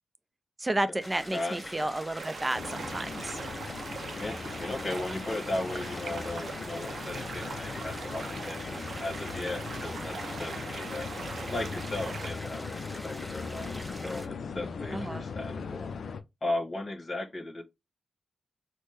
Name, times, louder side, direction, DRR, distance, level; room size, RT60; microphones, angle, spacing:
voice 1, 0.6-3.4 14.9-15.2, right 1 dB, 25° right, 0.5 m, -32 dB
sound 1, 1.0-14.3, equal, ahead, 1.0 m, -44 dB
voice 2, 1.3-1.8 4.2-11.1 11.5-15.9 16.4-17.6, left 2 dB, 45° left, 1.1 m, -36 dB
sound 2, 2.2-12.3, right 5 dB, 75° right, 0.5 m, -42 dB
sound 3, 2.5-16.2, left 5 dB, 70° left, 0.4 m, -39 dB
4.2 x 2.1 x 3.2 m
supercardioid pair, 45°, 0 cm